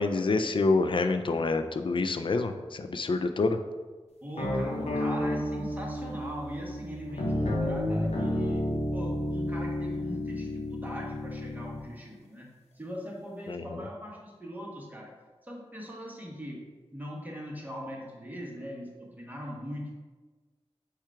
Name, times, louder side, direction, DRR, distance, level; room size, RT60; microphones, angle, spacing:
voice 1, 0.0-3.6 13.5-13.9, left 3 dB, 50° left, 7 dB, 0.4 m, -27 dB
voice 2, 4.2-12.5 12.7-15.1 15.4-19.9, equal, 15° right, -1 dB, 1.1 m, -40 dB
sound 1, 4.4-11.8, left 1 dB, 70° left, 0.8 m, -31 dB
4.4 x 2.3 x 4.7 m, 1.3 s
cardioid pair, 50°, 11 cm